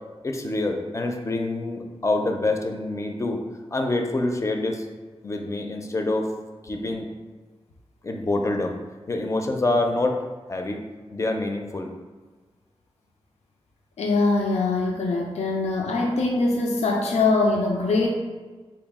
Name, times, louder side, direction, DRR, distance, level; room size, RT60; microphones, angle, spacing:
voice 1, 0.2-3.4 3.7-4.9 5.2-6.3 6.6-7.1 8.0-8.7 9.1-10.2 10.5-10.8 11.1-11.9, left 2 dB, 30° left, 3 dB, 0.4 m, -26 dB
voice 2, 14.0-18.1, left 3 dB, 90° left, 0 dB, 0.5 m, -22 dB
3.9 x 2.3 x 3.5 m, 1.3 s
wide cardioid pair, 110°, 11 cm